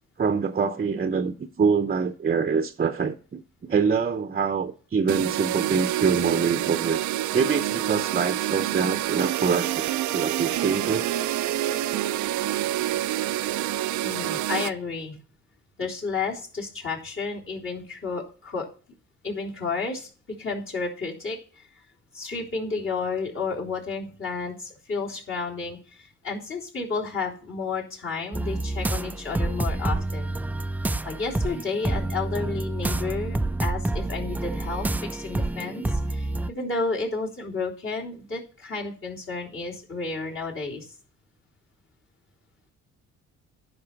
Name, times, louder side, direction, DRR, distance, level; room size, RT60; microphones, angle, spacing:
voice 1, 0.2-7.0 7.3-9.8 10.1-11.1, right 5 dB, 30° right, 0.7 m, -25 dB
sound 1, 5.1-14.7, right 13 dB, 70° right, 0.5 m, -27 dB
voice 2, 14.0-15.2 15.8-18.7 19.2-20.1 20.4-21.4 22.1-30.3 31.0-34.9 35.1-40.9, left 4 dB, 45° left, 3.5 m, -31 dB
sound 2, 28.3-36.5, right 2 dB, 5° right, 0.3 m, -28 dB
10.5 x 5.6 x 5.9 m
cardioid pair, 90°, 30 cm